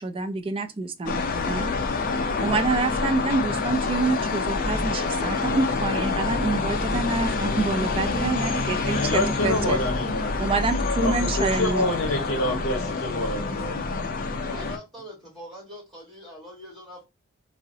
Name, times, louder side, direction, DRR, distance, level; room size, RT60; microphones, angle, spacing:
voice 1, 0.0-1.7 2.4-9.8 10.4-11.9, right 3 dB, 25° right, 0.3 m, -27 dB
sound 1, 1.1-14.8, left 3 dB, 40° left, 0.5 m, -27 dB
voice 2, 8.8-10.3 11.0-13.8, left 1 dB, 70° left, 0.8 m, -27 dB
voice 3, 14.4-17.0, equal, ahead, 1.3 m, -44 dB
3.7 x 2.0 x 2.6 m
head